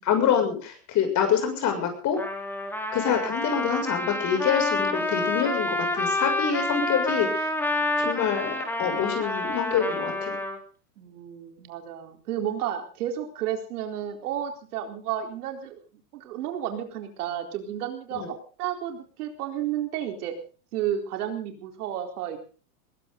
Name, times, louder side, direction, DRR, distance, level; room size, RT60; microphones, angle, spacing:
voice 1, 0.0-2.2 2.9-7.5 8.0-8.5 8.8-10.3 18.1-18.3, left 8 dB, 40° left, 6 dB, 6.9 m, -26 dB
Trumpet, 2.2-10.6, left 1 dB, 5° left, 3.0 m, -28 dB
voice 2, 11.0-15.8 16.1-20.3 20.7-22.4, right 10 dB, 70° right, 4 dB, 4.2 m, -32 dB
20.5 x 17.5 x 4.0 m, 0.39 s
supercardioid pair, 130°, 46 cm